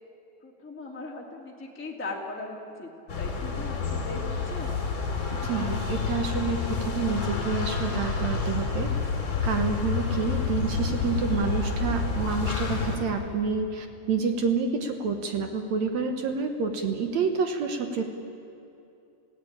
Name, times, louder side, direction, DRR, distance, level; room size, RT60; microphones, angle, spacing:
voice 1, 0.4-4.8, left 3 dB, 5° left, -2 dB, 1.9 m, -39 dB
sound 1, 3.1-13.0, left 4 dB, 35° left, 3.3 m, -29 dB
voice 2, 5.4-9.1 9.4-18.0, right 5 dB, 60° right, 5 dB, 2.2 m, -28 dB
28.0 x 16.5 x 8.8 m, 2.7 s
omnidirectional pair, 4.0 m